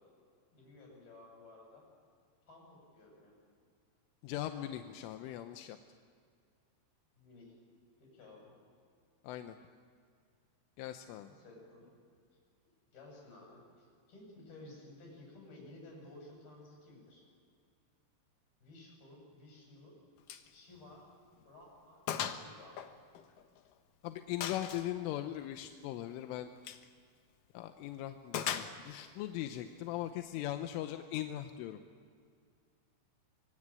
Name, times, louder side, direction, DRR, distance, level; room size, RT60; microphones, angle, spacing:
voice 1, 0.5-1.9 2.5-3.3 7.1-7.5 8.0-8.5 11.3-11.9 12.9-17.2 18.6-20.0 20.5-21.1 21.4-22.0 22.3-22.8, left 2 dB, 50° left, 0 dB, 9.9 m, -55 dB
voice 2, 4.2-5.8 9.3-9.6 10.8-11.3 24.0-26.5 27.6-31.8, left 13 dB, 85° left, 7 dB, 3.4 m, -40 dB
Gunshot gunfire, 20.3-20.5 20.8-20.9 21.4-21.5 22.1-22.5 22.8-23.7 24.4-24.9 26.6-26.9 28.3-29.1, left 9 dB, 70° left, 2.0 m, -38 dB
25.5 x 24.5 x 8.9 m, 2.2 s
omnidirectional pair, 5.6 m